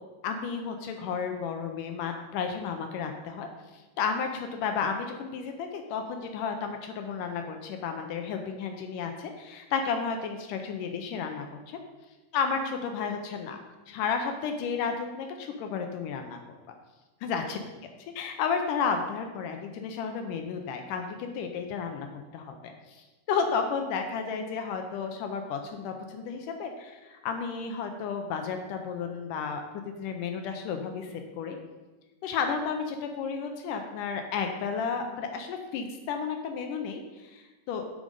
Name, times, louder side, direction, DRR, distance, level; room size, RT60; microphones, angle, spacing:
voice 1, 0.2-11.8 12.3-13.6 13.9-16.6 17.2-17.6 18.2-22.1 22.3-29.6 30.0-31.6 32.2-37.9, left 6 dB, 80° left, 5 dB, 2.0 m, -32 dB
8.4 x 5.1 x 5.3 m, 1.2 s
omnidirectional pair, 4.1 m